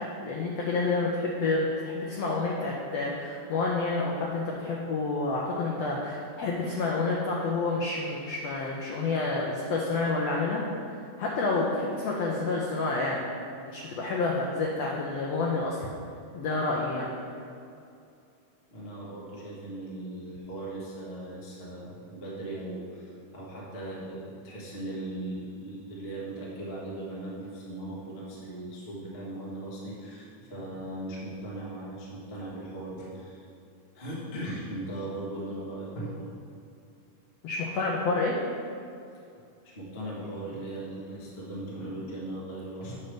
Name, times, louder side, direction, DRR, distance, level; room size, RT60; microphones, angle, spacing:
voice 1, 0.0-10.6 10.9-13.3 13.7-15.9 16.3-17.1 37.4-38.3, left 3 dB, 85° left, -2 dB, 1.4 m, -29 dB
voice 2, 18.7-33.4 33.9-36.3 39.6-43.0, right 1 dB, 55° left, -6 dB, 0.6 m, -38 dB
8.4 x 3.3 x 6.3 m, 2.5 s
omnidirectional pair, 3.7 m